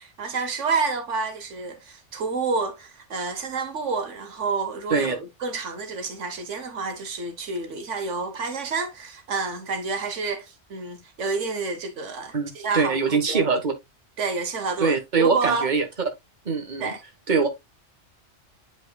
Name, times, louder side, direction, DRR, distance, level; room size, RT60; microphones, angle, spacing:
voice 1, 0.0-13.4 14.2-15.7 16.8-17.0, right 4 dB, 80° right, 1.3 m, -29 dB
voice 2, 12.3-13.7 14.8-15.9 16.4-16.9 17.3-17.5, right 5 dB, 40° right, 1.5 m, -23 dB
9.0 x 5.3 x 2.3 m
omnidirectional pair, 1.2 m